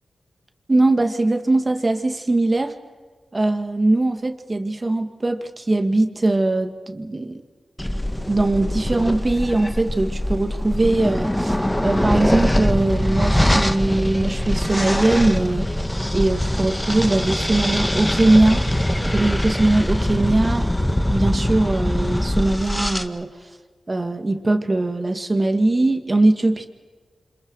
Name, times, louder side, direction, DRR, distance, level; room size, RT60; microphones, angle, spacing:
voice 1, 0.7-2.8 3.3-7.4 8.3-15.7 16.1-18.6 19.0-20.7 21.1-23.3 23.9-26.7, right 2 dB, 35° right, 7 dB, 2.3 m, -20 dB
sound 1, 7.8-23.0, left 1 dB, 10° left, 1.6 m, -22 dB
29.0 x 26.5 x 4.9 m, 1.5 s
cardioid pair, 50°, 0 cm